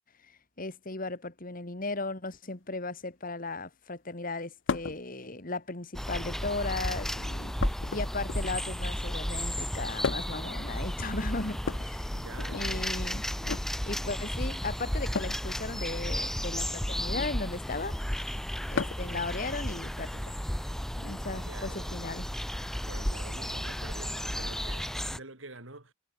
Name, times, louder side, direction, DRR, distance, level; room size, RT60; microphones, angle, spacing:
voice 1, 0.6-7.5 7.9-12.1 12.5-13.2 13.9-18.0 18.7-20.3 21.0-22.3, left 3 dB, 45° left, 2.4 m, -36 dB
sound 1, 4.7-5.0 6.1-6.6 7.6-8.7 10.0-10.5 11.6-12.7 13.4-13.7 15.1-15.4 17.0-17.4 18.7-19.2 20.6-20.7 22.0-22.1, left 5 dB, 70° left, 0.5 m, -35 dB
sound 2, 5.9-25.2, equal, ahead, 0.4 m, -33 dB
voice 2, 12.1-12.9 21.3-22.1 22.9-25.9, right 2 dB, 80° right, 4.1 m, -47 dB
head